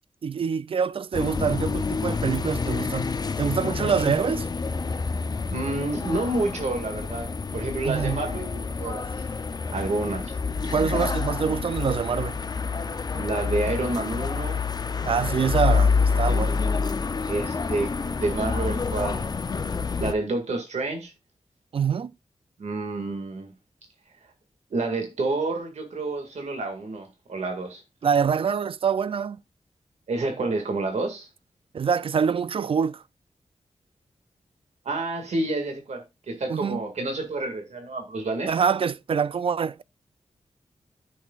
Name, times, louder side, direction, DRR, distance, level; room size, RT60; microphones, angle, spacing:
voice 1, 0.2-3.1 3.4-4.5 7.8-8.2 10.7-12.4 15.0-16.6 21.7-22.1 28.0-29.4 31.7-33.0 36.5-36.8 38.5-39.8, right 6 dB, 50° right, 0.4 m, -25 dB
sound 1, 1.1-20.1, left 5 dB, 35° left, 0.5 m, -27 dB
voice 2, 5.5-9.0 9.7-10.4 13.1-14.6 17.3-19.3 20.0-21.1 22.6-23.5 24.7-27.8 30.1-31.3 34.9-38.6, right 2 dB, 80° right, 2.0 m, -29 dB
13.5 x 6.4 x 2.4 m
wide cardioid pair, 165°, 11 cm